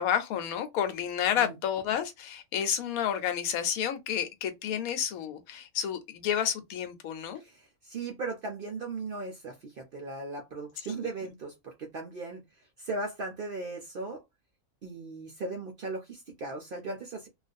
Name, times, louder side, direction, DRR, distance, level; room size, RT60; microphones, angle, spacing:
voice 1, 0.0-7.4, left 9 dB, 90° left, 1.1 m, -30 dB
voice 2, 7.4-12.4 12.8-14.2 14.8-17.3, right 3 dB, 65° right, 0.5 m, -37 dB
2.5 x 2.3 x 2.5 m
omnidirectional pair, 1.5 m